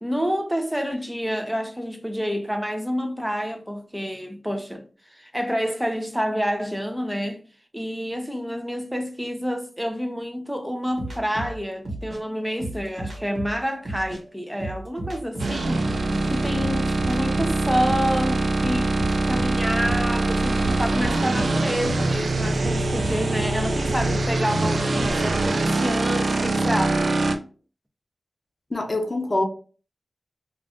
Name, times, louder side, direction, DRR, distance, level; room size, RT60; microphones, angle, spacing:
voice 1, 0.0-4.9 5.1-7.4 7.7-19.0 19.2-27.0, equal, 5° right, 0.6 m, -28 dB
sound 1, 11.0-14.2 14.6-18.1 18.6-25.1, right 1 dB, 60° right, 1.4 m, -35 dB
sound 2, 15.4-27.4, right 2 dB, 80° right, 0.4 m, -23 dB
voice 2, 28.7-29.5, left 2 dB, 40° left, 0.7 m, -24 dB
2.4 x 2.4 x 3.4 m
wide cardioid pair, 60°, 0 cm